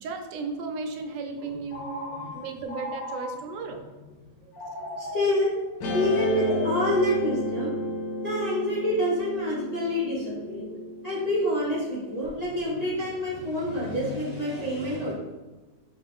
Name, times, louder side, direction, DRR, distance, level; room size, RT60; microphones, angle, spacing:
voice 1, 0.0-3.8, right 4 dB, 80° right, 4 dB, 1.2 m, -35 dB
Telephone, 1.7-3.7 4.5-7.6, left 1 dB, 90° left, 1.9 m, -38 dB
voice 2, 4.7-5.5 5.9-7.8 8.2-10.7 11.0-15.1, left 1 dB, 40° left, -9 dB, 0.6 m, -27 dB
Guitar, 5.8-12.3, left 1 dB, 75° left, 1.3 m, -32 dB
5.1 x 2.5 x 3.4 m, 1.2 s
omnidirectional pair, 1.9 m